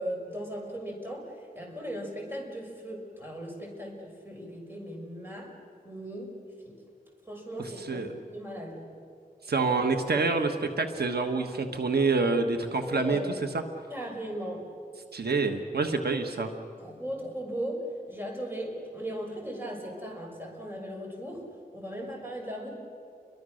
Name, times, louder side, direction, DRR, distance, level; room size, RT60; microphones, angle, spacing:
voice 1, 0.0-5.5 5.8-6.3 6.6-6.8 7.3-9.0 12.9-13.3 13.9-14.7 16.8-21.5 21.7-22.7, equal, 15° right, 0 dB, 6.3 m, -37 dB
voice 2, 7.6-8.1 9.5-13.2 15.1-16.5, right 4 dB, 90° right, 6 dB, 1.5 m, -27 dB
29.5 x 23.0 x 6.5 m, 2.4 s
wide cardioid pair, 90°, 16 cm